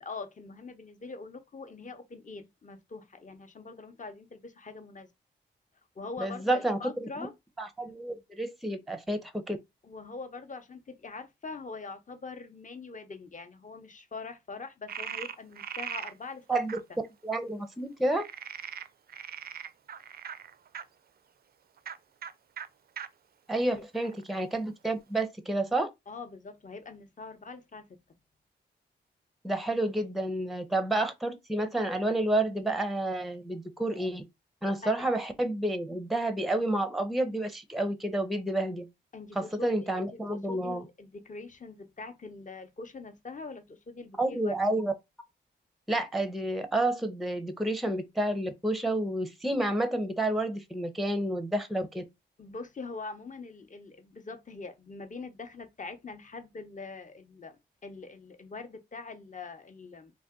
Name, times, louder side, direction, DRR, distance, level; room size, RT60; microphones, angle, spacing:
voice 1, 0.0-5.1 6.0-7.3 9.8-16.6 23.7-24.1 26.1-27.9 34.8-35.0 39.1-44.6 52.4-60.1, left 3 dB, 40° left, 0.8 m, -43 dB
voice 2, 6.2-7.1 7.6-9.6 16.5-16.8 17.2-18.2 23.5-25.9 29.4-34.2 34.6-38.9 39.4-40.8 44.2-44.9 45.9-52.0, right 1 dB, ahead, 0.6 m, -30 dB
Frog, 14.9-16.1 16.7-16.8 18.1-20.8 21.8-22.0 22.2-22.3 22.6-22.7 23.0-23.1 23.7-24.4, right 8 dB, 50° right, 0.4 m, -40 dB
2.5 x 2.2 x 3.5 m
cardioid pair, 50°, 20 cm